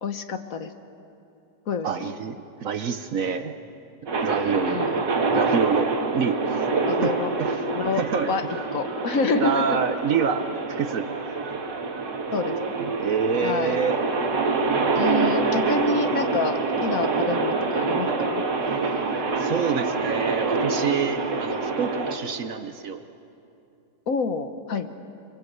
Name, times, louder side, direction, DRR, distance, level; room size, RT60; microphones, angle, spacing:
voice 1, 0.0-0.7 1.7-2.1 4.7-5.0 6.8-7.3 7.7-8.4 8.7-9.8 12.3-12.6 13.4-13.8 14.9-18.5 24.1-24.9, left 4 dB, 55° left, 8 dB, 1.4 m, -27 dB
voice 2, 1.8-3.6 4.2-4.8 5.3-6.6 7.0-7.7 8.0-8.3 9.4-10.5 10.8-11.1 12.8-14.0 19.4-23.0, right 6 dB, 60° right, 9 dB, 1.1 m, -27 dB
sound 1, 4.1-22.2, right 3 dB, 90° right, 2.5 m, -26 dB
25.5 x 22.5 x 8.0 m, 2.7 s
omnidirectional pair, 1.9 m